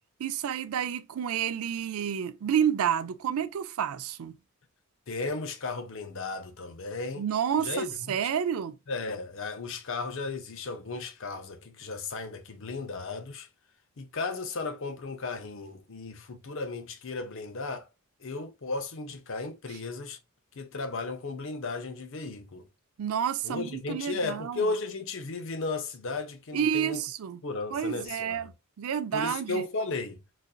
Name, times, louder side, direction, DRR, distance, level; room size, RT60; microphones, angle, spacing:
voice 1, 0.2-4.4 7.2-8.8 23.0-24.7 26.5-27.4 27.7-28.5 28.8-29.6, right 8 dB, 75° right, 0.4 m, -29 dB
voice 2, 5.1-7.2 7.6-8.2 8.9-13.5 14.0-17.9 18.2-20.2 20.5-22.7 23.4-27.0 27.4-28.5 29.1-30.2, left 3 dB, 65° left, 0.6 m, -35 dB
4.0 x 2.5 x 2.3 m
head